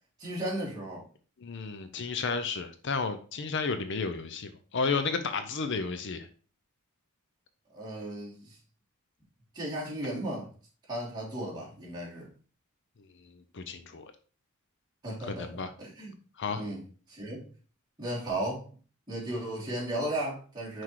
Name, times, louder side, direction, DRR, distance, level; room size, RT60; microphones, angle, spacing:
voice 1, 0.2-1.0 7.7-8.5 9.5-10.5 10.9-12.3 15.0-15.5 15.8-16.1 16.6-16.8 17.1-17.4 18.0-18.6 19.1-20.8, right 1 dB, 20° right, -7 dB, 3.1 m, -35 dB
voice 2, 1.4-6.3 13.5-14.1 15.2-15.7 16.4-16.7, left 4 dB, 55° left, 9 dB, 0.6 m, -32 dB
6.0 x 4.7 x 4.6 m, 0.39 s
head